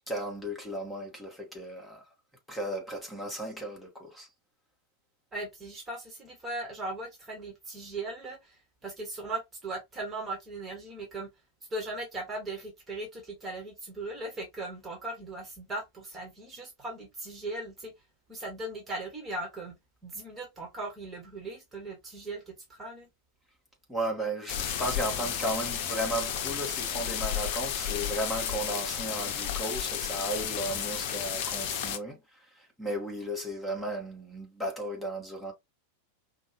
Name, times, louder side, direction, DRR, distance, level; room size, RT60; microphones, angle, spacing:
voice 1, 0.1-2.1 2.5-4.3 23.9-35.5, right 1 dB, 5° left, 1.7 m, -35 dB
voice 2, 5.3-11.3 11.7-17.9 18.3-19.8 20.0-23.1, right 2 dB, 15° right, 1.6 m, -38 dB
sound 1, 24.5-32.0, left 9 dB, 45° left, 0.8 m, -32 dB
5.2 x 2.4 x 3.0 m
figure-of-eight pair, 90°, 0 cm